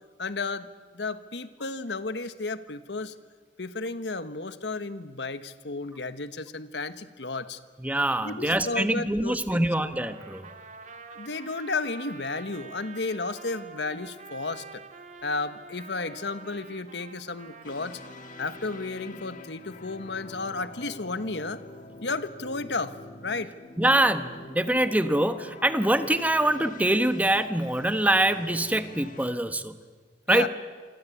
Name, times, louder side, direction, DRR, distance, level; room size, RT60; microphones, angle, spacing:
voice 1, 0.2-0.7 0.9-3.1 3.6-7.6 8.2-9.7 11.1-14.8 15.2-18.0 18.4-21.6 22.0-23.0 23.2-23.5 30.3-30.5, left 3 dB, 75° left, 12 dB, 1.3 m, -33 dB
voice 2, 7.8-10.5 23.8-29.8 30.3-30.5, right 1 dB, 10° right, 10 dB, 1.1 m, -24 dB
Trumpet, 10.0-19.0, right 4 dB, 45° right, 2.2 m, -47 dB
sound 1, 17.6-29.3, left 2 dB, 50° left, 1.6 m, -46 dB
27.5 x 25.0 x 8.4 m, 1.5 s
head